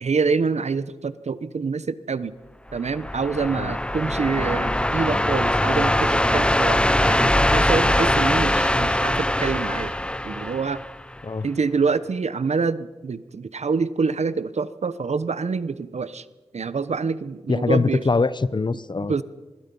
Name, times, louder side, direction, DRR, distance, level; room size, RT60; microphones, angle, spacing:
voice 1, 0.0-2.3 2.7-9.9 10.2-10.8 11.4-16.2 16.5-18.0 19.1-19.2, right 5 dB, 75° right, 15 dB, 1.0 m, -26 dB
sound 1, 2.7-11.2, left 1 dB, 10° left, 0.7 m, -22 dB
voice 2, 17.5-19.2, left 3 dB, 40° left, 16 dB, 0.9 m, -23 dB
25.0 x 23.0 x 5.5 m, 1.2 s
wide cardioid pair, 80°, 12 cm